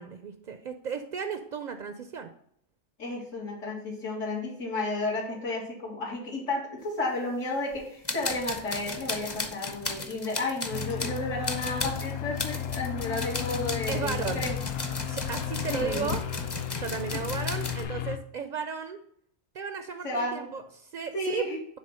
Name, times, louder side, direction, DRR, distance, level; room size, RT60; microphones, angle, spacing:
voice 1, 0.0-2.3 13.9-14.4 15.1-16.2 16.7-19.0 19.5-21.5, right 6 dB, 65° right, 8 dB, 0.4 m, -34 dB
voice 2, 3.0-14.6 15.7-16.1 17.1-17.2 20.0-20.5 21.1-21.6, left 2 dB, 90° left, -7 dB, 2.4 m, -32 dB
sound 1, 7.7-7.8 8.0-17.8, left 2 dB, 25° left, 0.6 m, -36 dB
sound 2, 10.7-18.2, left 9 dB, 65° left, 0.7 m, -34 dB
7.3 x 3.4 x 5.4 m, 0.67 s
omnidirectional pair, 1.3 m